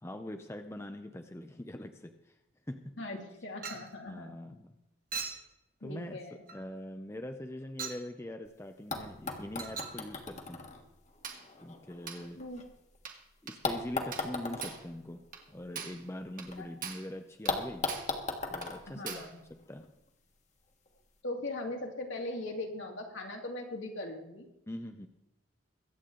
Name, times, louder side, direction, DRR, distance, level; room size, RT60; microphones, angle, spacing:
voice 1, 0.0-2.3 2.7-2.9 4.1-4.7 5.8-6.2 6.5-10.7 11.6-12.4 13.4-17.9 18.5-19.9 24.7-25.1, left 1 dB, 15° left, 6 dB, 0.6 m, -43 dB
voice 2, 3.0-4.3 5.8-6.4 12.4-12.6 16.6-16.7 18.9-19.4 21.2-24.5, left 2 dB, 65° left, 1 dB, 2.4 m, -40 dB
Chink clink, 3.6-3.9 5.1-5.5 6.5-6.7 7.8-8.1 9.6-10.0 11.2-11.5 12.1-12.3 13.1-13.2 13.5-13.6 14.1-14.3 14.6-14.9 15.3-15.5 15.8-16.0 16.4-16.5 16.8-17.1 17.5-17.6 17.9-18.2 18.6-18.7 19.1-19.3, right 6 dB, 45° right, 1.6 m, -41 dB
sound 1, 8.5-8.6 8.9-13.0 13.6-16.6 16.9-17.0 17.5-19.9 20.9-21.0, left 3 dB, 35° left, 1.5 m, -39 dB
23.0 x 8.5 x 3.8 m, 0.89 s
head